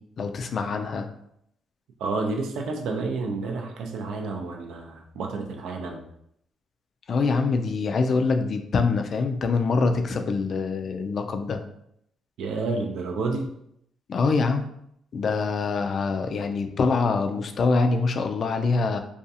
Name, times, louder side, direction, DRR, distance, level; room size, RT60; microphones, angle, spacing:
voice 1, 0.2-1.1 7.1-11.6 14.1-14.7 15.1-19.0, left 4 dB, 55° left, 6 dB, 0.3 m, -24 dB
voice 2, 2.0-6.0 12.4-13.5, right 3 dB, 80° right, 2 dB, 0.4 m, -30 dB
2.5 x 2.3 x 2.7 m, 0.74 s
cardioid pair, 90°, 0 cm